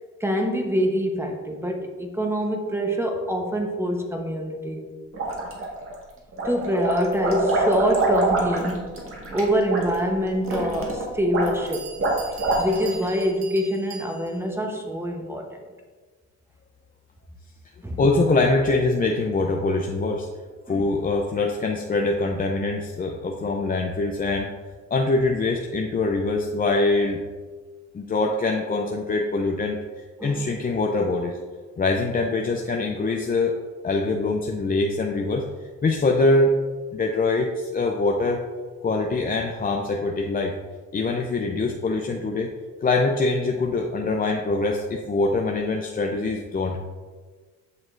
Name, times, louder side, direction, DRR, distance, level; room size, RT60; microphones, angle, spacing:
voice 1, 0.2-4.9 6.4-8.9 9.3-11.9 12.6-15.6 17.8-18.0 20.7-20.9 30.2-30.6, equal, 10° right, 2 dB, 0.9 m, -25 dB
sound 1, 5.1-5.9 6.3-13.0, right 2 dB, 45° right, 1.6 m, -25 dB
Bell, 11.3-11.4 11.7-14.5, right 6 dB, 60° right, 0.8 m, -41 dB
voice 2, 18.0-20.3 20.7-24.5 24.9-27.2 27.9-29.8 30.2-31.4 31.8-33.6 33.8-35.5 35.8-36.6 36.9-38.4 38.8-40.5 40.9-42.5 42.8-46.8, left 3 dB, 30° left, 1 dB, 0.5 m, -23 dB
7.4 x 5.9 x 2.5 m, 1.4 s
cardioid pair, 90°, 30 cm